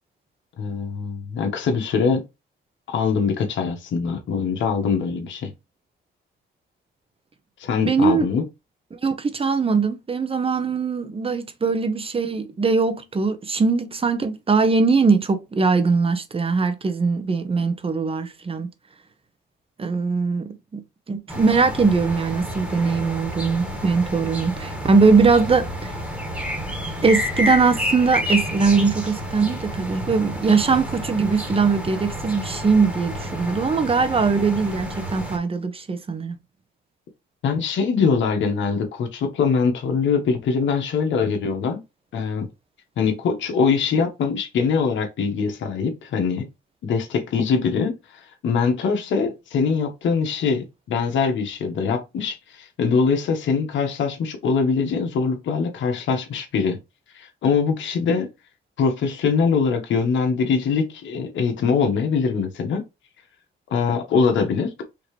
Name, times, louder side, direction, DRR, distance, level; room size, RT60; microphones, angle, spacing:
voice 1, 0.6-2.2 2.9-5.5 7.6-8.4 37.4-41.8 42.1-42.5 43.0-46.5 46.8-56.8 57.1-58.3 58.8-62.8 63.7-64.7, left 5 dB, 70° left, 1.2 m, -23 dB
voice 2, 7.8-8.3 9.0-18.7 19.8-25.9 27.0-36.4, right 4 dB, 30° right, 0.9 m, -21 dB
sound 1, 21.3-35.4, equal, 5° right, 1.6 m, -30 dB
5.1 x 2.9 x 3.2 m
cardioid pair, 90°, 20 cm